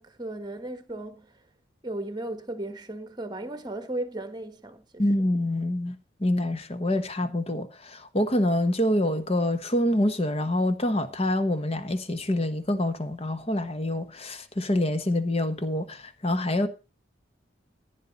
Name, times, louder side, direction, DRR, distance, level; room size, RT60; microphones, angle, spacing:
voice 1, 0.0-1.4 1.8-5.3, right 1 dB, 20° right, 1.4 m, -36 dB
voice 2, 5.0-6.0 6.2-16.7, left 1 dB, 30° left, 1.1 m, -26 dB
15.0 x 9.6 x 4.0 m
head